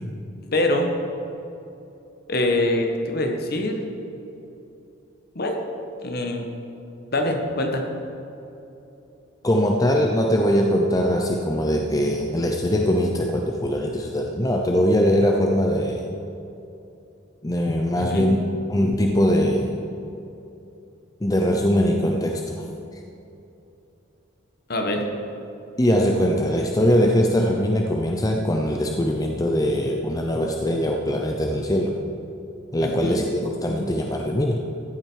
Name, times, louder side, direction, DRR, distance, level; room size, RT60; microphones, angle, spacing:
voice 1, 0.5-0.9 2.3-3.8 5.3-5.6 6.0-6.5 7.1-7.9 18.0-18.3 24.7-25.0 32.8-33.2, left 1 dB, 50° left, 3 dB, 1.3 m, -24 dB
voice 2, 9.4-16.0 17.4-18.4 18.7-19.7 21.2-22.6 25.8-32.0 32.7-34.6, equal, 15° left, 1 dB, 0.6 m, -21 dB
14.5 x 8.9 x 4.6 m, 2.8 s
head